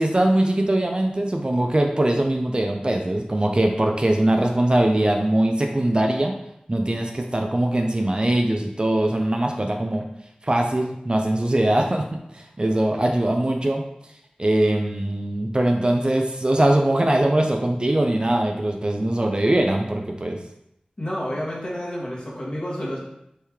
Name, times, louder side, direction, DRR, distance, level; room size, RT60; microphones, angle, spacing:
voice 1, 0.0-6.3 6.7-10.0 10.4-13.8 14.4-20.4, right 1 dB, 35° right, 3 dB, 0.4 m, -21 dB
voice 2, 21.0-23.0, equal, 35° left, -5 dB, 1.2 m, -29 dB
3.1 x 2.7 x 3.4 m, 0.80 s
wide cardioid pair, 50°, 3 cm